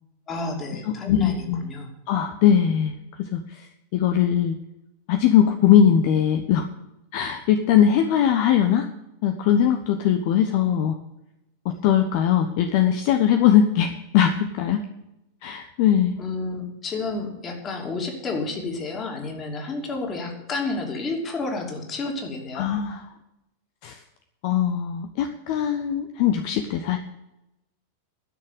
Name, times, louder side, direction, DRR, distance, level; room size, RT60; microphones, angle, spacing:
voice 1, 0.3-1.9 16.2-22.7, left 3 dB, 25° left, 2 dB, 2.8 m, -30 dB
voice 2, 0.9-1.7 2.1-4.6 5.1-6.6 7.1-8.9 9.2-11.0 11.8-14.8 15.4-16.1 22.5-23.0 23.8-24.0 24.4-27.0, left 9 dB, 45° left, 7 dB, 0.9 m, -20 dB
12.0 x 6.6 x 9.2 m, 0.90 s
figure-of-eight pair, 90°, 0 cm